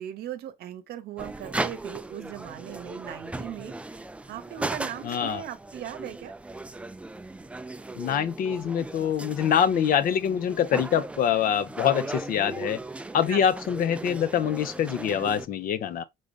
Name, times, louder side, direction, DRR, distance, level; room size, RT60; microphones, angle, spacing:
voice 1, 0.0-6.3 13.3-13.4, right 11 dB, 70° right, 0.8 m, -39 dB
sound 1, 1.2-15.5, right 2 dB, 5° right, 0.3 m, -37 dB
voice 2, 5.0-5.4 7.9-12.8 13.1-16.0, left 8 dB, 55° left, 0.6 m, -25 dB
5.1 x 3.8 x 2.3 m
cardioid pair, 110°, 17 cm